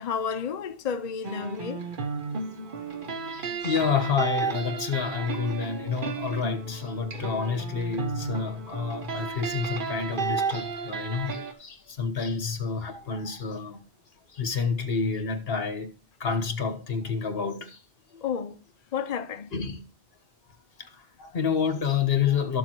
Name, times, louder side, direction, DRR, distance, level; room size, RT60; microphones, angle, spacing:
voice 1, 0.0-1.9 3.6-3.7 18.2-18.6 18.9-19.5, left 7 dB, 50° left, 0.6 m, -31 dB
sound 1, 1.2-11.5, right 5 dB, 55° right, 1.0 m, -33 dB
voice 2, 2.6-13.8 14.3-15.9 16.2-17.8 19.5-19.8 20.8-22.6, left 6 dB, 65° left, 1.5 m, -29 dB
12.5 x 7.1 x 3.0 m
omnidirectional pair, 1.1 m